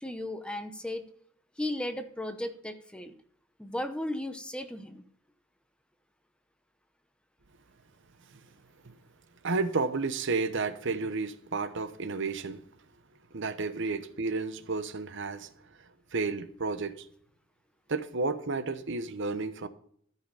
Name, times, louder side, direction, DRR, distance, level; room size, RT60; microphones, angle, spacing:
voice 1, 0.0-1.1 1.6-3.1 3.6-5.0, left 1 dB, 5° left, 0.7 m, -35 dB
voice 2, 9.4-12.6 13.3-15.5 16.1-17.1 17.9-19.7, right 3 dB, 65° right, 0.9 m, -31 dB
14.0 x 5.7 x 5.6 m
head